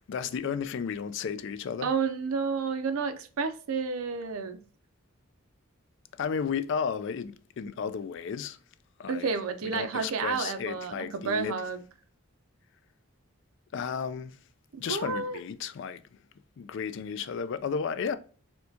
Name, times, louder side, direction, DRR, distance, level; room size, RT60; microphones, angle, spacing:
voice 1, 0.1-1.9 6.2-8.6 9.0-9.3 9.6-11.6 13.7-14.4 14.8-16.0 16.6-18.1, left 6 dB, 55° left, 0.3 m, -33 dB
voice 2, 1.8-4.6 9.1-11.8 14.9-15.4, right 5 dB, 80° right, 0.5 m, -30 dB
4.3 x 2.3 x 2.6 m
head